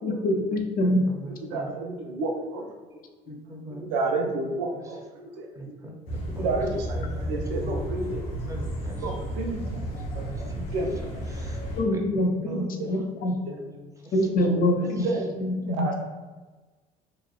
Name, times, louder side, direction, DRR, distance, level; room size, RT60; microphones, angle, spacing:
voice 1, 0.0-1.0 3.3-3.4 11.8-12.3 12.5-13.3 14.1-15.0 15.4-15.9, left 1 dB, 45° left, 2 dB, 0.5 m, -25 dB
voice 2, 0.8-1.7 3.3-3.9 4.2-4.3 4.7-4.8 5.5-6.5 6.9-7.9 8.5-9.3 9.8-10.4 10.8-10.9 11.3-11.6 11.9-12.7 13.3-14.1 15.0-15.2 15.6-15.9, right 1 dB, 15° right, 1 dB, 0.6 m, -41 dB
voice 3, 1.5-2.7 3.8-5.5 6.4-6.9 7.1-8.2 9.0-9.8 10.1-10.3 10.5-11.0 12.4-12.9 13.5-13.6 14.4-15.2 15.5-15.9, right 2 dB, 80° right, 1 dB, 0.5 m, -31 dB
sound 1, 6.1-11.8, right 1 dB, 85° left, 1.0 m, -33 dB
2.9 x 2.0 x 2.3 m, 1.3 s
hypercardioid pair, 65°, 20 cm